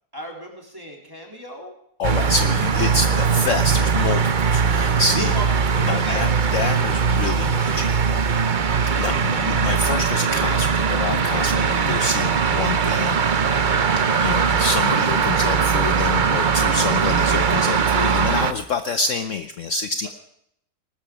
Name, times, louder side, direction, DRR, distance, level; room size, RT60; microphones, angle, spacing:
voice 1, 0.1-1.7 5.1-5.5 5.7-6.3 13.7-14.0, equal, 15° right, 0 dB, 3.7 m, -36 dB
voice 2, 2.0-5.3 5.8-8.0 9.0-13.2 14.2-20.1, left 4 dB, 60° left, 10 dB, 1.0 m, -27 dB
sound 1, 2.0-18.5, right 6 dB, 45° right, 0.7 m, -20 dB
19.5 x 13.0 x 5.0 m, 0.72 s
omnidirectional pair, 1.7 m